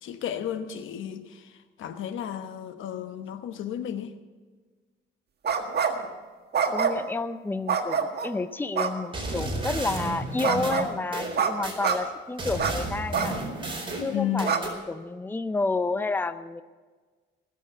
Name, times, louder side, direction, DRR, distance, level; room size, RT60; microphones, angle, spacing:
voice 1, 0.0-4.1 14.1-14.5, left 9 dB, 80° left, 1.1 m, -33 dB
sound 1, 5.4-6.1 6.5-7.1 7.7-8.3 8.8-8.9 10.4-10.9 11.4-11.5 11.8-12.0 12.6-12.7 13.1-13.3 13.8-13.9 14.4-14.6, right 6 dB, 55° right, 1.7 m, -26 dB
voice 2, 6.7-13.3 14.0-16.6, left 3 dB, 10° left, 0.6 m, -30 dB
sound 2, 9.1-12.0 12.4-14.8, right 2 dB, 25° right, 4.5 m, -32 dB
19.5 x 7.5 x 8.0 m
cardioid pair, 90°, 20 cm